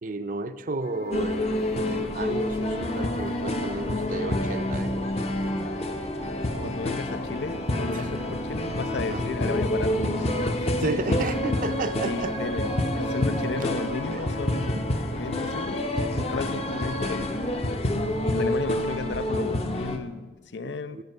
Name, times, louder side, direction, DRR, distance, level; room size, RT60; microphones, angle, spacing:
voice 1, 0.0-5.1 6.5-6.8 7.9-8.1 9.1-9.2 10.8-12.3 13.6-13.7 14.1-14.2 14.7-14.9 20.6-21.0, right 3 dB, 50° right, 11 dB, 0.5 m, -33 dB
sound 1, 0.8-17.7, left 1 dB, 60° left, 1.5 m, -38 dB
sound 2, 1.1-20.0, left 1 dB, 35° left, 0.6 m, -28 dB
voice 2, 6.6-10.0 10.6-10.9 12.0-14.8 15.2-15.8 16.1-17.4 18.2-21.0, left 4 dB, 90° left, 13 dB, 0.5 m, -34 dB
15.0 x 5.1 x 5.5 m, 1.3 s
head